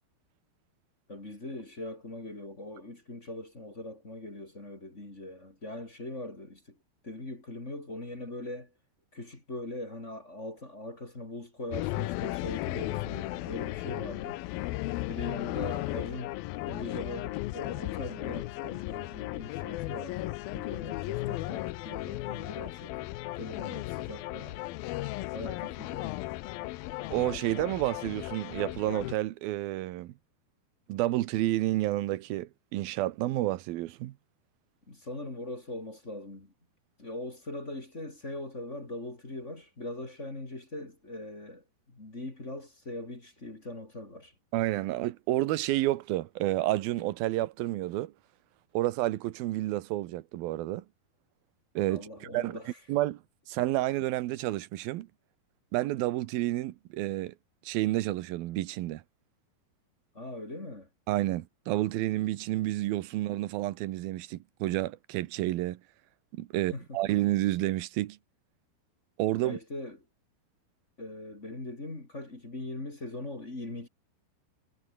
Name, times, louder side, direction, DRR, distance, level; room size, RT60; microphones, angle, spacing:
voice 1, 1.1-6.8 7.0-8.7 9.1-14.4 15.1-23.0 23.3-24.6 25.3-26.2 34.9-36.5 37.0-44.3 51.9-52.8 60.1-60.9 66.5-67.0 69.4-70.0 71.0-73.9, left 1 dB, 20° left, 3.0 m, -41 dB
sound 1, 11.7-29.2, left 18 dB, 80° left, 2.3 m, -35 dB
voice 2, 27.1-30.1 30.9-34.1 44.5-48.1 48.7-50.8 51.8-52.6 52.9-53.2 53.5-55.1 55.7-57.3 57.6-59.0 61.1-65.8 66.3-68.2 69.2-69.6, right 16 dB, 70° right, 2.6 m, -30 dB
omnidirectional pair, 4.8 m